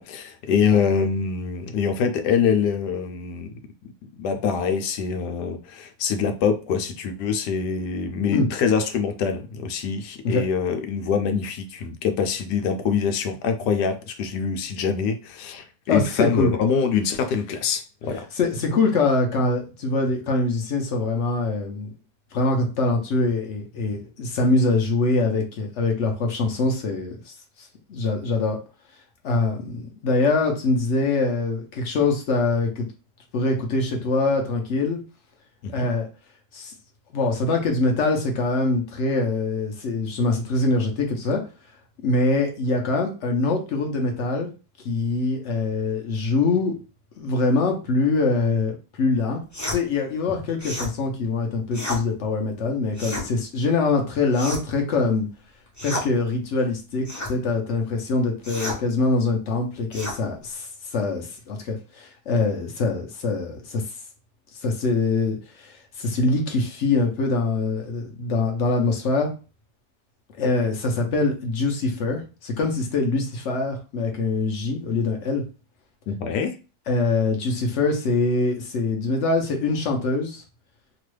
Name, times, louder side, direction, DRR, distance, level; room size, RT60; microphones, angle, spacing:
voice 1, 0.0-3.5 4.2-18.3 35.6-35.9 76.1-76.5, left 6 dB, 85° left, 1.2 m, -24 dB
voice 2, 15.9-16.5 18.4-21.9 22.3-27.2 27.9-28.6 29.2-32.9 33.3-35.0 35.7-36.1 36.5-36.7 37.1-41.4 42.0-44.5 44.8-46.8 47.2-48.7 49.0-49.4 49.7-55.3 55.8-60.7 60.9-63.8 64.6-69.3 70.4-75.4 76.9-80.4, left 3 dB, 60° left, 0.8 m, -23 dB
sound 1, 49.5-49.8 50.6-50.9 51.7-52.0 52.9-53.3 54.3-54.8 55.7-56.1 57.0-57.3 58.4-58.8 59.9-60.2, left 1 dB, 20° left, 0.5 m, -31 dB
3.0 x 2.3 x 3.1 m
omnidirectional pair, 1.8 m